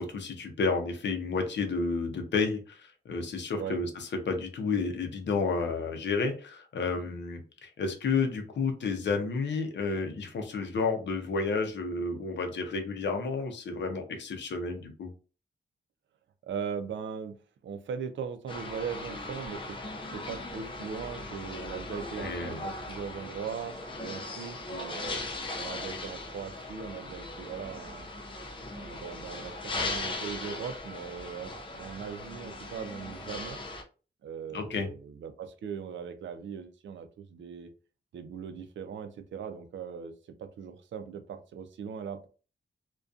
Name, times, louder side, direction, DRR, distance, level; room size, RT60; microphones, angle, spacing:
voice 1, 0.0-15.1 22.2-22.6 34.5-34.9, left 4 dB, 75° left, 5 dB, 0.6 m, -31 dB
voice 2, 16.5-17.4 17.6-25.2 25.6-28.1 28.7-33.6 34.2-37.7 38.1-40.1 40.4-42.3, right 7 dB, 90° right, 9 dB, 0.4 m, -39 dB
sound 1, 18.5-33.8, left 2 dB, 25° left, 0.4 m, -39 dB
2.5 x 2.2 x 2.3 m, 0.36 s
wide cardioid pair, 180°, 19 cm